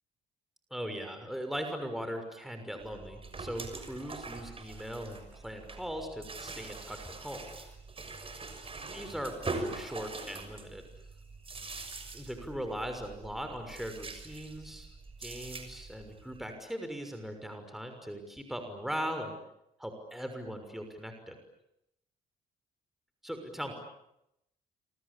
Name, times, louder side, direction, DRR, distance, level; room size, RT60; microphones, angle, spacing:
voice 1, 0.7-7.4 8.9-10.8 12.1-14.9 15.2-19.3 19.8-21.4 23.2-23.7, equal, ahead, 6 dB, 6.3 m, -39 dB
sound 1, 2.8-16.5, right 3 dB, 35° right, 6.6 m, -43 dB
28.5 x 24.5 x 8.6 m, 0.83 s
supercardioid pair, 65°, 17 cm